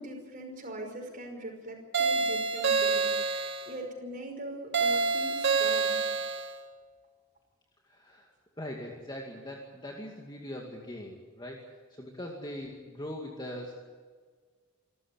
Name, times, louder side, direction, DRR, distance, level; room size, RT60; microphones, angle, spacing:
voice 1, 0.0-6.2, right 1 dB, 40° right, 3 dB, 5.5 m, -42 dB
sound 1, 1.9-3.7 4.7-6.5, right 4 dB, 60° right, 2.4 m, -27 dB
voice 2, 7.9-13.7, left 1 dB, 20° left, 0 dB, 2.4 m, -41 dB
27.5 x 13.5 x 9.4 m, 1.5 s
head